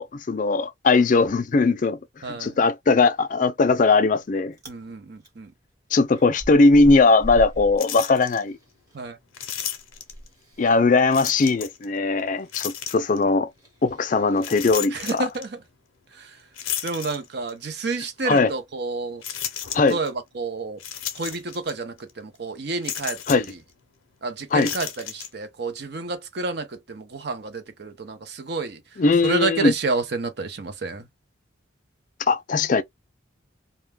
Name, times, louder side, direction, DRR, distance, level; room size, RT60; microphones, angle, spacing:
voice 1, 0.0-2.0 2.3-4.6 5.9-8.6 10.6-13.5 13.8-15.3 18.2-18.5 19.7-20.0 23.3-23.5 24.5-24.7 29.0-29.7 32.3-32.8, left 3 dB, 40° left, 0.4 m, -19 dB
voice 2, 2.2-2.6 4.7-5.5 8.9-9.2 14.9-15.6 16.1-16.3 16.8-19.2 19.9-20.8 21.1-23.4 24.2-28.8 29.2-31.1, right 3 dB, 55° right, 0.6 m, -30 dB
Chewing mastication, 3.8-4.2 4.5-4.8 5.2-9.0 9.3-14.7, equal, 20° right, 1.0 m, -40 dB
sound 1, 7.8-8.4 9.3-10.3 11.1-11.8 12.5-13.2 14.4-15.5 16.6-17.6 18.2-18.3 19.2-20.1 20.8-21.7 22.0-22.1 22.8-23.5 24.5-25.3, left 10 dB, 90° left, 0.6 m, -33 dB
2.2 x 2.2 x 3.3 m
head